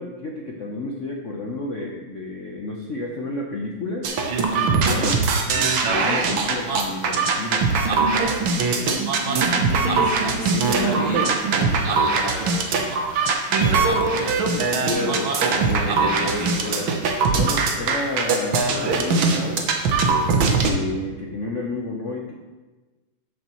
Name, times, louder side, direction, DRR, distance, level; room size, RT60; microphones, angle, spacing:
voice 1, 0.0-4.1 4.6-7.7 17.3-19.7 20.3-22.3, left 2 dB, 60° left, -1 dB, 0.8 m, -31 dB
sound 1, 4.0-20.7, right 4 dB, 70° right, 1.7 m, -21 dB
voice 2, 9.3-11.3 11.8-12.7 13.5-16.9, left 2 dB, 90° left, -8 dB, 4.0 m, -30 dB
12.5 x 6.7 x 3.0 m, 1.2 s
omnidirectional pair, 2.3 m